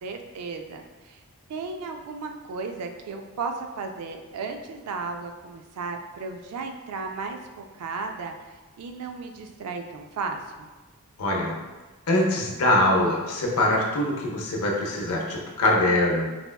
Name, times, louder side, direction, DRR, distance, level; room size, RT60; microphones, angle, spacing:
voice 1, 0.0-1.2 1.5-8.3 8.8-10.7, right 4 dB, 90° right, 4 dB, 0.4 m, -35 dB
voice 2, 11.2-11.6 12.1-16.3, left 1 dB, 75° left, -1 dB, 0.6 m, -23 dB
4.1 x 2.2 x 2.2 m, 1.2 s
head